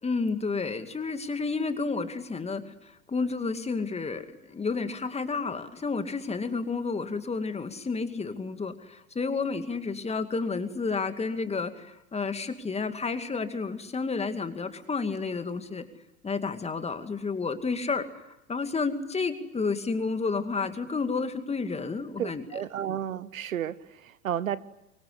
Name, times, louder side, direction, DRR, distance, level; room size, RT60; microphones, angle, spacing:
voice 1, 0.0-15.8 16.2-22.4, left 4 dB, 15° left, 2.4 m, -31 dB
voice 2, 22.2-24.6, right 10 dB, 75° right, 1.1 m, -32 dB
25.0 x 24.0 x 9.8 m
figure-of-eight pair, 85°, 41 cm